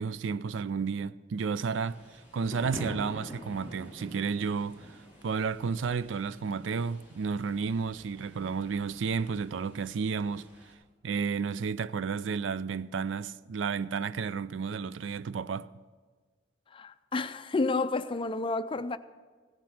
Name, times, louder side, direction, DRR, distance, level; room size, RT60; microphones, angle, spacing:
voice 1, 0.0-2.0 2.3-10.5 11.0-15.7, right 5 dB, 85° right, 0.4 m, -32 dB
Thunder / Rain, 1.7-10.7, equal, 10° right, 2.9 m, -46 dB
voice 2, 16.7-19.0, left 3 dB, 30° left, 0.5 m, -30 dB
16.5 x 7.6 x 7.2 m
head